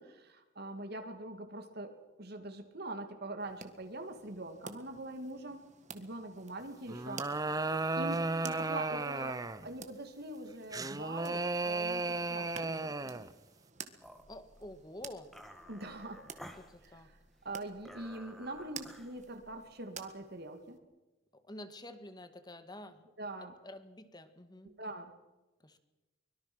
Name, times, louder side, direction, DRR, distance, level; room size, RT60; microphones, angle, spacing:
voice 1, 0.0-1.9 2.2-7.2 8.0-13.3 15.7-16.2 16.8-17.2 17.4-20.8 23.2-23.5 24.6-25.1, right 2 dB, 55° right, 6 dB, 2.3 m, -43 dB
sound 1, 3.4-20.8, right 6 dB, 40° right, 1.8 m, -53 dB
sound 2, 6.9-9.7 10.7-13.3, right 3 dB, 20° right, 0.8 m, -34 dB
sound 3, 14.0-19.7, equal, ahead, 1.8 m, -54 dB
voice 2, 14.3-15.3 16.4-17.1 21.3-23.1 23.4-24.8 25.6-25.8, left 1 dB, 20° left, 10 dB, 1.8 m, -49 dB
24.0 x 22.0 x 6.2 m, 1.1 s
head